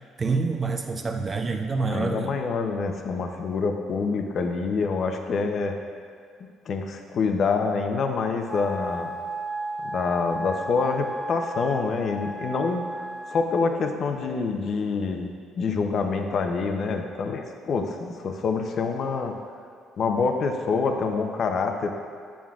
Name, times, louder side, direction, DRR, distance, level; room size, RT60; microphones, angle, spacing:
voice 1, 0.2-2.3, right 4 dB, 35° right, 5 dB, 0.4 m, -27 dB
voice 2, 1.9-5.8 6.7-9.1 9.8-13.0 13.3-19.4 20.0-21.9, left 4 dB, 55° left, 5 dB, 0.6 m, -26 dB
Wind instrument woodwind instrument, 8.5-13.7, right 1 dB, 15° right, 0.9 m, -34 dB
9.3 x 7.2 x 2.4 m, 2.2 s
cardioid pair, 95°, 0 cm